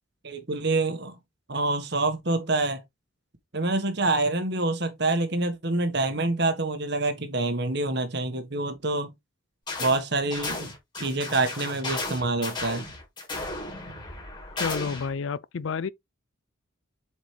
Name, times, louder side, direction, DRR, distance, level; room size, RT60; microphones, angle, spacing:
voice 1, 0.2-1.2 1.5-2.8 3.5-9.1 9.8-10.7 11.0-12.8, right 2 dB, 55° right, 1.5 m, -26 dB
Laser Shots, 9.7-10.0 10.3-15.1, left 2 dB, 20° left, 3.5 m, -34 dB
voice 2, 14.6-15.9, left 5 dB, 70° left, 0.4 m, -30 dB
7.6 x 5.0 x 3.3 m
head